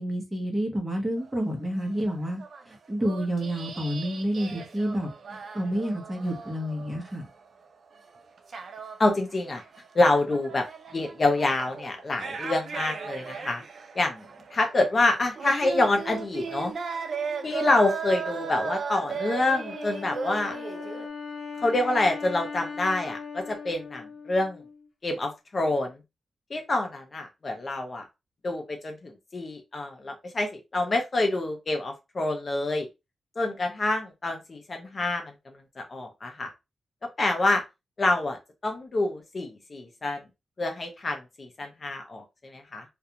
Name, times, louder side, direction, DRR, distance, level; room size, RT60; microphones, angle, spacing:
voice 1, 0.0-2.4 2.7-7.2, equal, 15° right, 0.9 m, -29 dB
sound 1, 1.2-1.5 1.8-7.6 7.9-21.1, right 5 dB, 60° right, 0.4 m, -37 dB
voice 2, 9.0-9.6 9.9-10.7 10.9-13.6 14.0-16.7 17.4-20.6 21.6-24.6 25.0-26.0 26.5-28.0 28.4-32.9 33.4-35.3 35.8-36.5 37.2-37.6 38.0-40.2 40.6-42.8, left 2 dB, 40° left, 0.5 m, -27 dB
Wind instrument woodwind instrument, 19.5-24.9, left 5 dB, 60° left, 0.9 m, -39 dB
2.4 x 2.2 x 2.8 m
wide cardioid pair, 105°, 0 cm